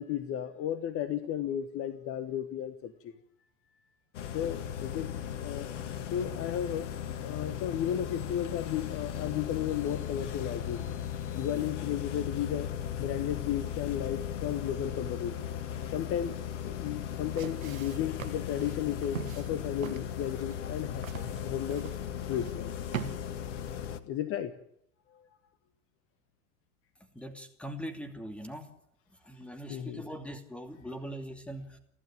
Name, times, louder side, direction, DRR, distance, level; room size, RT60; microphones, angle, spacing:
voice 1, 0.0-2.9 4.3-5.1 5.4-5.7 6.1-6.9 7.2-10.9 11.3-12.7 13.0-15.4 15.9-21.9 22.3-22.9 24.1-24.5 29.7-30.0, left 10 dB, 30° left, 1.3 m, -34 dB
sound 1, 4.1-24.0, left 9 dB, 55° left, 1.7 m, -37 dB
sound 2, 17.0-23.2, right 9 dB, 65° right, 1.8 m, -43 dB
voice 2, 27.1-28.7 29.2-31.8, equal, 5° left, 2.7 m, -41 dB
30.0 x 12.0 x 8.9 m
figure-of-eight pair, 90°, 43 cm